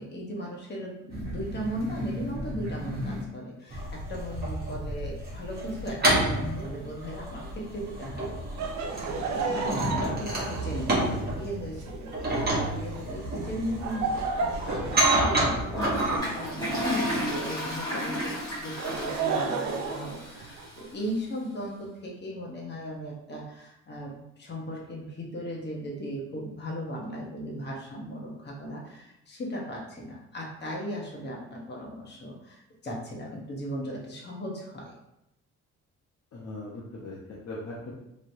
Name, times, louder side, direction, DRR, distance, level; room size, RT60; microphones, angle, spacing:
voice 1, 0.0-8.3 8.9-34.9, equal, 35° left, -3 dB, 1.0 m, -37 dB
sound 1, 1.1-3.2 3.7-16.2, right 1 dB, 30° right, 1.1 m, -30 dB
Laughter, 8.6-17.6 18.5-20.9, right 4 dB, 70° right, 0.5 m, -34 dB
Toilet flush, 15.7-20.8, equal, 15° left, 1.4 m, -32 dB
voice 2, 36.3-37.9, left 2 dB, 55° left, -5 dB, 0.8 m, -39 dB
3.1 x 2.8 x 2.7 m, 0.84 s
cardioid pair, 90°, 30 cm